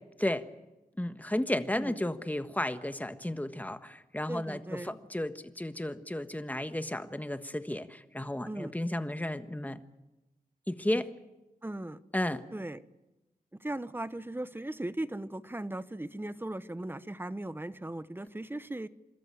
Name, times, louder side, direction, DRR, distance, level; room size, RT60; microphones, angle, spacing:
voice 1, 1.0-9.8 10.7-11.1 12.1-12.4, left 1 dB, 10° left, 10 dB, 1.4 m, -33 dB
voice 2, 4.3-5.0 8.4-8.7 10.9-11.0 11.6-12.0 12.5-12.8 13.5-18.9, right 1 dB, 15° right, 15 dB, 1.0 m, -38 dB
27.5 x 13.5 x 9.1 m, 1.0 s
cardioid pair, 60°, 15 cm